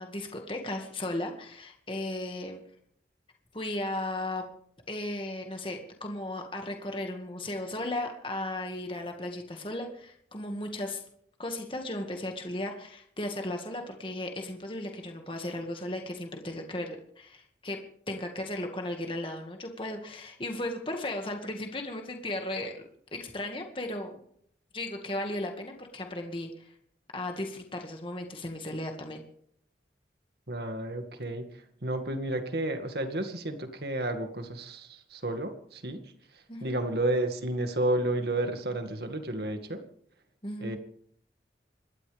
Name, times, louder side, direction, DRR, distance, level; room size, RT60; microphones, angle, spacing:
voice 1, 0.0-2.6 3.5-4.5 4.9-11.0 11.4-17.8 18.1-22.7 23.1-24.2 24.7-26.7 27.1-29.2 36.5-36.8 40.4-40.8, left 1 dB, 30° left, 3 dB, 2.0 m, -35 dB
voice 2, 30.5-31.5 31.8-36.0 36.6-39.8 40.6-40.8, right 1 dB, 65° right, 6 dB, 2.1 m, -31 dB
27.0 x 12.5 x 3.5 m, 0.67 s
head